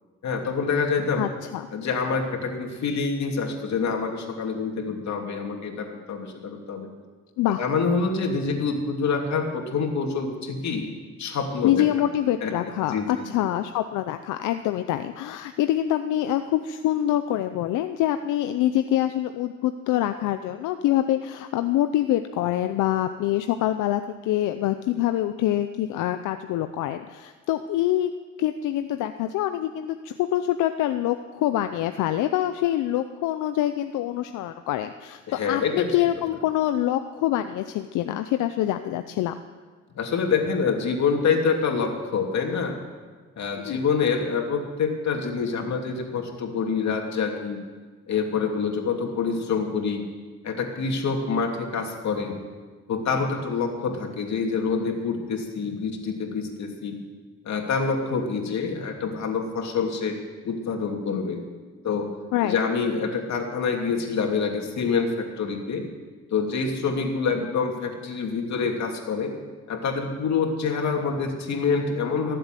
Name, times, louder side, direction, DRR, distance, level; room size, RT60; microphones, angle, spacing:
voice 1, 0.2-1.2 1.7-6.9 7.6-10.8 11.2-11.8 12.4-12.5 12.8-13.2 35.3-35.9 40.0-42.8 43.4-47.6 48.1-50.0 50.4-52.3 52.9-57.0 57.4-60.2 60.4-61.4 61.8-62.1 62.4-65.9 66.3-69.3 69.7-72.4, left 5 dB, 65° left, 2 dB, 2.8 m, -26 dB
voice 2, 1.2-1.7 7.4-7.6 11.6-28.1 28.4-39.4 43.6-43.8 62.3-62.6, left 13 dB, 90° left, 9 dB, 0.7 m, -25 dB
19.5 x 7.8 x 9.1 m, 1.4 s
cardioid pair, 90°, 30 cm